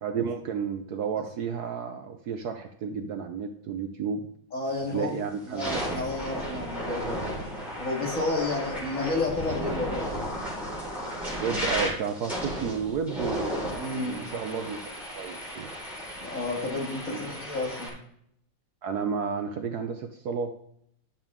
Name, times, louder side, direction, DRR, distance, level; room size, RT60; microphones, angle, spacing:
voice 1, 0.0-4.3 4.9-5.9 8.3-8.5 11.4-14.8 15.1-15.7 17.1-17.2 18.8-20.6, right 6 dB, 65° right, 6 dB, 1.1 m, -32 dB
voice 2, 4.5-5.2 5.5-10.3 13.8-14.2 16.2-17.9, left 2 dB, 45° left, 0 dB, 2.4 m, -31 dB
sound 1, 4.7-5.0 5.4-17.9, equal, ahead, 4.7 m, -34 dB
12.0 x 7.1 x 3.7 m, 0.70 s
omnidirectional pair, 2.1 m